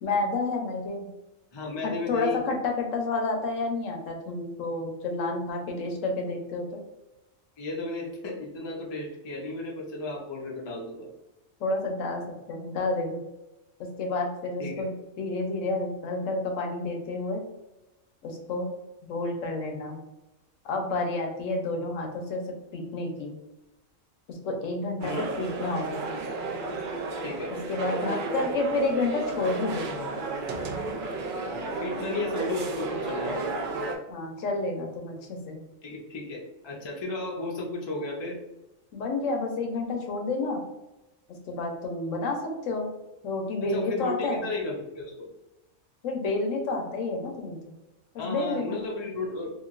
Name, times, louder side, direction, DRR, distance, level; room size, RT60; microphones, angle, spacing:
voice 1, 0.0-1.1 1.8-6.7 11.6-13.2 13.8-14.9 15.2-17.4 18.2-18.7 19.0-20.0 20.6-23.4 24.3-26.1 27.7-30.1 34.1-35.6 38.9-40.6 41.3-42.9 43.2-44.4 46.0-47.7 48.1-48.8, left 3 dB, 75° left, 2 dB, 1.0 m, -30 dB
voice 2, 1.5-2.4 7.6-11.1 14.6-14.9 25.0-25.3 27.2-27.5 31.4-33.5 34.1-34.5 35.8-38.4 43.7-45.3 48.2-49.5, left 2 dB, 40° left, -2 dB, 0.4 m, -34 dB
sound 1, 25.0-33.9, right 3 dB, 65° right, 0.5 m, -33 dB
2.9 x 2.5 x 2.4 m, 0.97 s
omnidirectional pair, 1.4 m